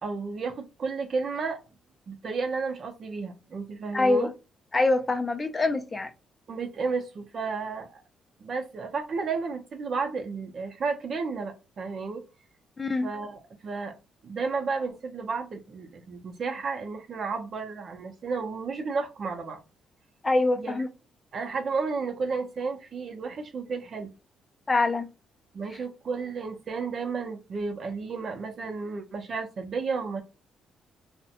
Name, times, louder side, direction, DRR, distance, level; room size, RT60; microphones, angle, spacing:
voice 1, 0.0-1.6 2.1-4.3 6.5-8.0 8.4-12.2 13.0-14.0 14.2-19.6 20.6-20.8 21.3-24.1 25.5-30.2, right 4 dB, 50° right, 0.6 m, -32 dB
voice 2, 3.9-4.3 4.7-6.1 12.8-13.1 20.2-20.9 24.7-25.1, left 2 dB, 25° left, 0.4 m, -24 dB
2.5 x 2.1 x 2.8 m
cardioid pair, 90°, 0 cm